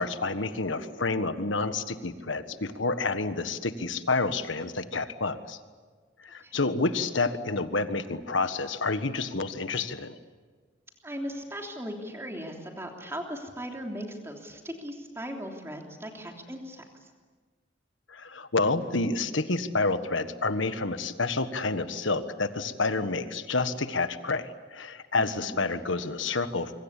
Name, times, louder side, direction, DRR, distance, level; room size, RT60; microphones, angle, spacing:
voice 1, 0.0-5.6 6.2-10.1 18.1-26.7, left 3 dB, 85° left, 10 dB, 1.5 m, -29 dB
voice 2, 6.4-6.8 11.0-17.1 25.2-25.6, equal, 15° right, 2 dB, 3.3 m, -38 dB
26.0 x 24.5 x 8.4 m, 1.5 s
head